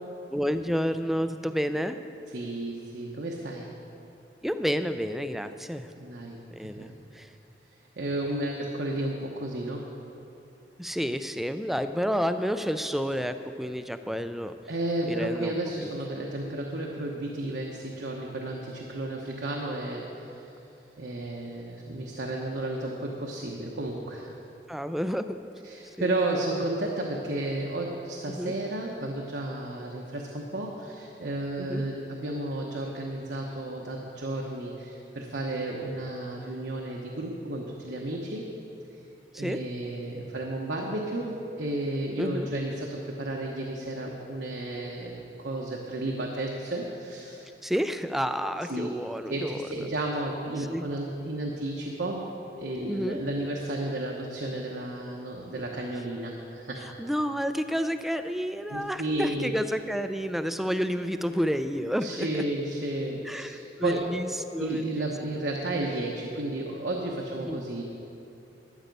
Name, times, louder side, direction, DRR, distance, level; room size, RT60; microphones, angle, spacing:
voice 1, 0.3-2.0 4.4-5.9 6.5-7.3 10.8-14.6 15.1-15.5 15.8-15.9 24.7-25.4 26.0-26.1 28.3-28.5 31.6-31.8 39.3-39.6 42.2-42.5 47.6-49.6 50.6-50.9 52.9-53.2 57.0-62.4 63.3-65.1 67.4-67.6, equal, ahead, 10 dB, 0.4 m, -30 dB
voice 2, 2.3-3.7 6.0-6.9 8.0-9.9 14.7-20.5 21.0-24.3 25.6-38.4 39.4-47.5 48.7-48.9 49.3-52.2 52.6-56.8 58.7-59.5 62.0-64.0 64.6-67.8, right 1 dB, 80° right, -1 dB, 1.0 m, -32 dB
12.5 x 9.1 x 5.3 m, 2.8 s
head